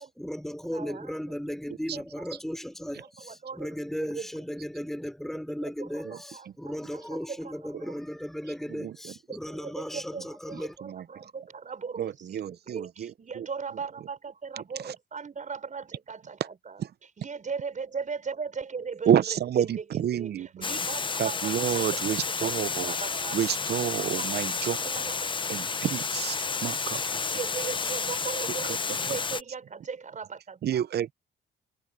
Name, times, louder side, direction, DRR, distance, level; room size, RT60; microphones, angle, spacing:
voice 1, 0.0-10.7, equal, ahead, 3.6 m, -36 dB
voice 2, 0.6-1.2 1.9-2.3 3.0-4.5 5.6-8.0 9.3-21.9 22.4-23.4 24.0-25.7 27.3-30.8, right 5 dB, 40° right, 5.7 m, -39 dB
voice 3, 8.7-9.1 10.8-11.1 12.0-13.1 13.4-13.5 19.1-20.7 21.2-22.9 23.3-24.8 25.5-27.2 30.6-31.1, right 10 dB, 55° right, 0.7 m, -29 dB
Water, 20.6-29.4, left 5 dB, 25° left, 0.6 m, -31 dB
cardioid pair, 90°, 20 cm